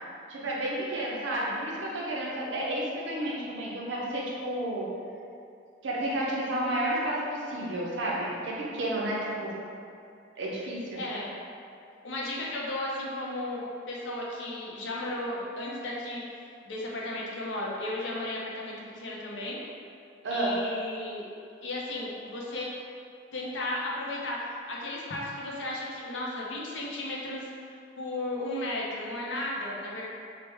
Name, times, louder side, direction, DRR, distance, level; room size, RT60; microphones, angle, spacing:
voice 1, 0.3-4.9 5.8-9.5 10.4-11.0 20.2-20.5, right 1 dB, 75° right, -4 dB, 0.5 m, -31 dB
voice 2, 11.0-11.3 12.0-19.6 20.3-21.3 21.6-22.7 23.3-30.1, left 1 dB, 80° left, -4 dB, 0.6 m, -35 dB
3.1 x 2.1 x 3.3 m, 2.5 s
head